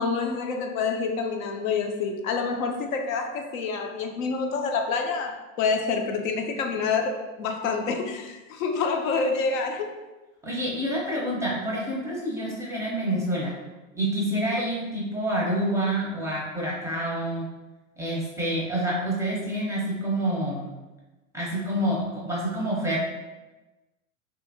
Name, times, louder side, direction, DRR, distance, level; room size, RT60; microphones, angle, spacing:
voice 1, 0.0-9.9 14.6-14.7, left 4 dB, 80° left, 4 dB, 0.6 m, -27 dB
voice 2, 10.4-13.5 13.9-17.5 18.0-20.7 21.3-23.0, right 1 dB, 5° right, -5 dB, 0.5 m, -27 dB
2.7 x 2.5 x 2.5 m, 1.1 s
hypercardioid pair, 115°, 40 cm